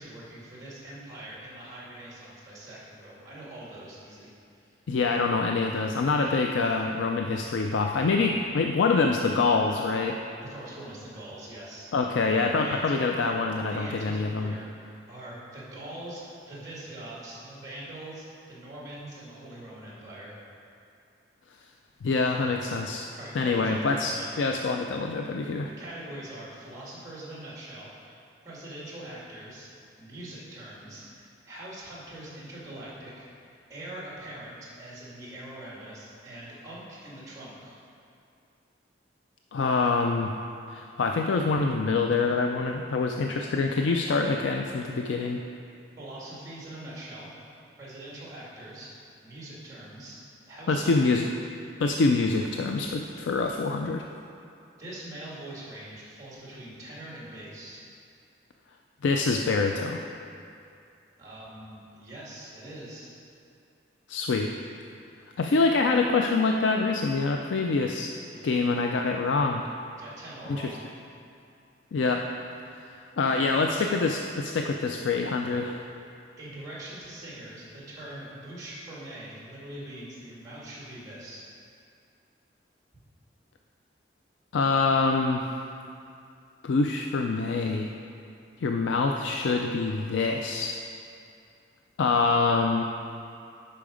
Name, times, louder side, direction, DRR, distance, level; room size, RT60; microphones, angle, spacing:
voice 1, 0.0-4.3 4.5-4.7 6.2-6.4 10.4-11.9 12.6-13.2 13.7-20.4 23.2-24.4 25.8-29.7 30.0-33.3 33.7-37.8 46.0-47.3 47.8-48.9 49.2-50.2 50.5-51.2 54.8-57.8 61.2-63.1 68.3-68.7 70.0-70.8 73.3-73.9 76.2-81.5, right 1 dB, 20° right, -6 dB, 2.0 m, -43 dB
voice 2, 4.9-10.2 11.9-14.5 22.0-23.1 23.4-25.7 39.5-40.3 40.7-45.4 50.7-51.3 51.8-54.0 59.0-60.0 64.1-64.5 65.4-68.1 68.4-69.6 70.5-70.6 71.9-72.2 72.9-75.8 84.5-85.5 86.6-87.9 88.6-90.8 92.0-92.8, left 4 dB, 85° left, 3 dB, 0.4 m, -25 dB
8.7 x 5.7 x 5.0 m, 2.5 s
head